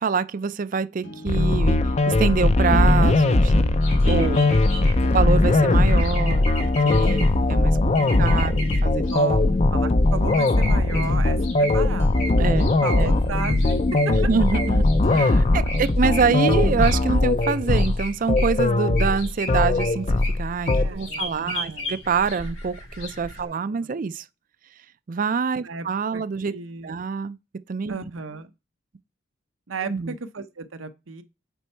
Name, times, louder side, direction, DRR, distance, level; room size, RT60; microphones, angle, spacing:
voice 1, 0.0-1.8 2.1-3.8 4.0-4.5 5.1-6.5 6.8-8.5 8.8-9.0 9.4-9.6 12.4-13.1 14.1-24.2 25.1-26.6 26.8-27.4 27.7-28.0 29.8-30.2, right 5 dB, 45° right, 0.4 m, -25 dB
sound 1, 1.0-17.0, equal, 60° left, 1.2 m, -42 dB
sound 2, 1.3-20.9, left 2 dB, 35° left, 0.5 m, -20 dB
sound 3, 3.8-23.5, equal, 85° left, 4.8 m, -37 dB
voice 2, 4.1-5.2 8.1-9.4 9.7-12.1 12.8-14.1 20.8-22.0 23.4-23.9 25.6-25.9 26.1-27.1 27.9-28.5 29.7-31.2, right 4 dB, 90° right, 0.8 m, -35 dB
8.2 x 4.5 x 4.4 m
head